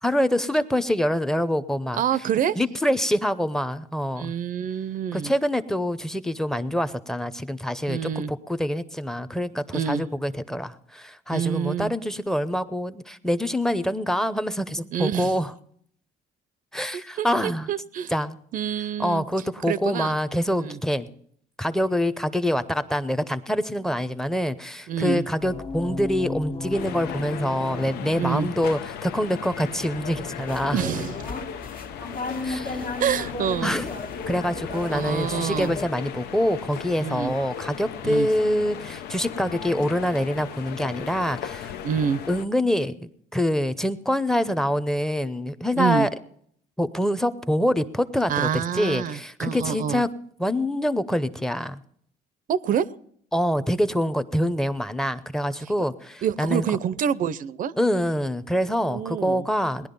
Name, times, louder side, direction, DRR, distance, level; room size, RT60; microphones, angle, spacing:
voice 1, 0.0-2.0 2.6-4.3 5.1-15.5 16.7-17.7 18.1-18.4 19.0-21.1 21.6-30.8 32.4-32.8 33.6-33.9 34.3-41.7 42.3-46.1 46.8-50.1 50.4-51.8 53.3-56.8 57.8-59.9, equal, 5° left, 13 dB, 0.8 m, -25 dB
voice 2, 1.9-2.6 4.1-5.3 7.9-8.3 9.7-10.1 11.3-11.9 14.9-15.3 17.2-18.1 18.5-19.2 19.7-20.2 20.5-20.8 24.9-25.2 28.2-28.5 30.7-31.2 33.0-33.8 34.9-35.7 37.0-37.3 38.0-38.3 41.8-42.2 45.8-46.1 48.3-50.0 52.5-52.9 56.2-57.7 58.8-59.4, right 8 dB, 55° right, 17 dB, 0.6 m, -27 dB
sound 1, 25.4-31.6, left 3 dB, 35° left, 0.9 m, -37 dB
sound 2, 26.7-42.5, left 9 dB, 75° left, 0.7 m, -37 dB
sound 3, 30.5-35.9, left 3 dB, 60° left, 1.6 m, -34 dB
18.5 x 11.0 x 5.4 m, 0.66 s
cardioid pair, 110°, 17 cm